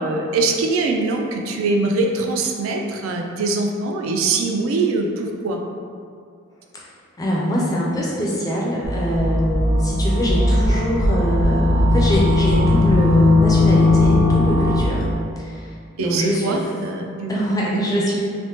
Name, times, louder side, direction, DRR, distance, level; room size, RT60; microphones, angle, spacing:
voice 1, 0.0-5.6 16.0-18.0, right 3 dB, 75° right, 2 dB, 0.3 m, -23 dB
voice 2, 7.2-15.1 15.4-15.7 16.0-16.6 17.3-18.3, equal, 15° left, -4 dB, 0.3 m, -23 dB
sound 1, 8.8-15.1, left 2 dB, 75° left, 0.6 m, -18 dB
3.2 x 2.0 x 2.8 m, 2.2 s
head